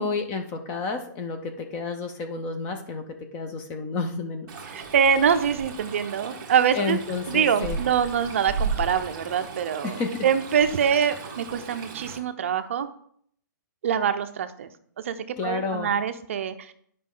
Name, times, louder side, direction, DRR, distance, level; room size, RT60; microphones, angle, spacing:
voice 1, 0.0-3.0 3.3-4.5 6.7-7.8 9.8-10.3 15.4-15.9, left 4 dB, 15° left, 6 dB, 0.4 m, -30 dB
Stream, 4.5-12.2, right 4 dB, 20° right, 1.2 m, -35 dB
voice 2, 4.7-7.0 7.3-12.9 13.8-14.7 15.0-15.2 15.4-16.7, right 7 dB, 40° right, 10 dB, 0.6 m, -24 dB
10.0 x 5.2 x 3.8 m, 0.62 s
hypercardioid pair, 175°, 11 cm